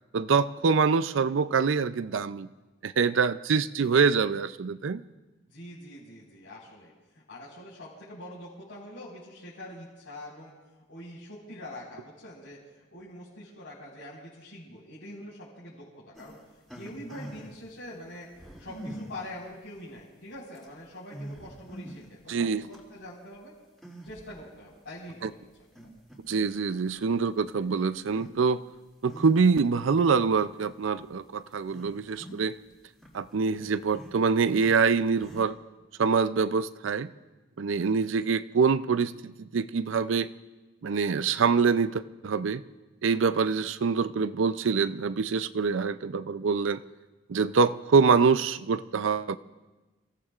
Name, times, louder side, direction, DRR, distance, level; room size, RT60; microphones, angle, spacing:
voice 1, 0.1-2.5 2.8-5.0 22.3-22.6 25.2-25.3 26.3-28.6 29.0-32.6 33.1-35.6 36.0-37.1 37.6-40.3 40.8-42.6 43.0-46.8 47.3-49.4, right 5 dB, 75° right, 14 dB, 0.5 m, -25 dB
voice 2, 5.5-6.9 7.3-10.5 10.9-12.6 12.9-16.4 16.7-23.5 24.0-25.4, left 1 dB, 75° left, -10 dB, 4.7 m, -44 dB
sound 1, 16.1-17.6 18.3-19.3 20.0-20.1 20.5-20.6 21.1-22.1 22.5-22.8 23.8-24.4 24.9-25.0 25.7-26.6 26.9-27.0 28.0-28.3 28.7-29.6 30.3-30.4 31.0-31.1 31.5-32.7 32.9-35.4, right 1 dB, ahead, 2.6 m, -44 dB
29.5 x 17.0 x 2.5 m, 1.2 s
head